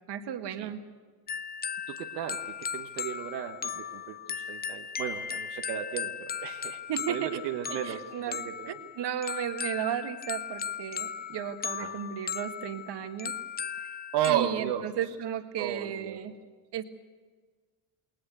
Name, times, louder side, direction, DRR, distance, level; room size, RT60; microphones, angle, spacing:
voice 1, 0.1-0.8 6.9-7.4 7.7-8.4 8.7-13.3 13.8-13.9 14.3-16.3 16.7-16.8, right 9 dB, 55° right, 7 dB, 1.8 m, -34 dB
sound 1, 1.3-14.3, left 7 dB, 20° left, 0.6 m, -37 dB
voice 2, 1.9-6.8 7.1-8.7 11.7-11.9 14.1-14.8 15.6-16.2, right 11 dB, 85° right, 3 dB, 1.3 m, -34 dB
20.0 x 19.5 x 8.2 m, 1.4 s
supercardioid pair, 70°, 48 cm